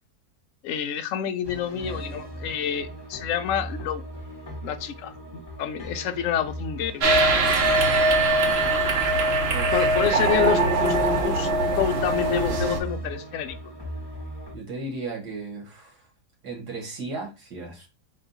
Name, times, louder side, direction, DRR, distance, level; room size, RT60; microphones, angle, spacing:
voice 1, 0.6-4.0 4.6-7.1 9.7-11.0 11.2-11.5 11.8-13.6, left 9 dB, 65° left, 8 dB, 0.8 m, -28 dB
sound 1, 1.4-14.6, equal, 20° left, 0.8 m, -39 dB
sound 2, 7.0-12.8, right 2 dB, 50° right, 0.9 m, -21 dB
voice 2, 9.5-9.8 14.5-16.0 16.4-17.9, right 3 dB, 80° right, 0 dB, 2.1 m, -35 dB
4.3 x 2.3 x 4.0 m, 0.28 s
omnidirectional pair, 1.7 m